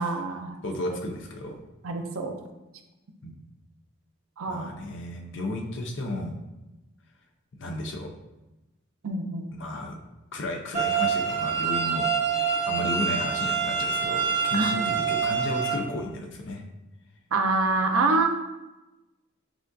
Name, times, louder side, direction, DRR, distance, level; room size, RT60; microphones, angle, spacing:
voice 1, 0.0-0.6 1.8-2.3 4.4-4.7 9.0-9.5 14.5-14.7 17.3-18.3, right 3 dB, 80° right, 5 dB, 0.5 m, -25 dB
voice 2, 0.6-1.6 3.2-3.4 4.5-6.3 7.6-8.1 9.5-9.9 10.3-12.1 12.7-16.6, left 1 dB, 55° left, 3 dB, 0.5 m, -33 dB
sound 1, 10.7-15.7, right 6 dB, 40° right, 1.3 m, -26 dB
6.0 x 2.4 x 2.6 m, 1.0 s
head